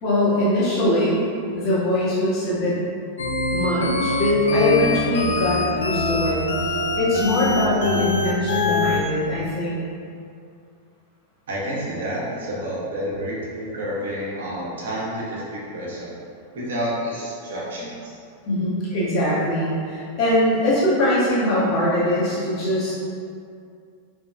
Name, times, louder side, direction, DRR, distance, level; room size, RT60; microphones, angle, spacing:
voice 1, 0.0-1.2 1.5-2.8 3.5-9.8 18.4-22.9, left 1 dB, 40° left, -10 dB, 1.5 m, -22 dB
sound 1, 3.2-9.0, left 3 dB, 70° left, 0.4 m, -23 dB
voice 2, 11.5-16.2 16.5-18.2 19.2-19.3, equal, 60° right, -5 dB, 0.9 m, -29 dB
3.9 x 3.4 x 2.3 m, 2.4 s
figure-of-eight pair, 90°, 0 cm